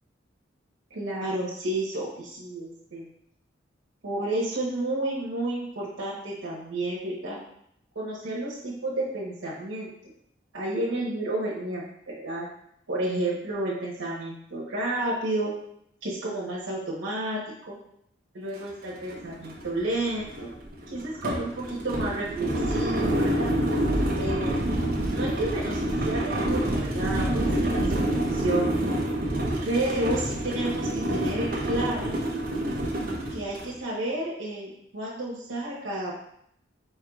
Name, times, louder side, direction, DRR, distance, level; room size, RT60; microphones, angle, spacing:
voice 1, 0.9-3.1 4.0-7.4 7.9-9.9 10.5-11.8 12.2-12.5 12.9-15.5 16.0-17.7 18.3-20.5 20.9-23.5 24.2-24.7 25.1-28.7 29.6-32.1 33.3-36.1, right 1 dB, 90° right, -7 dB, 1.0 m, -31 dB
sound 1, 18.6-18.7 19.0-33.7, right 1 dB, 45° right, 0.8 m, -27 dB
4.6 x 4.5 x 2.3 m, 0.72 s
head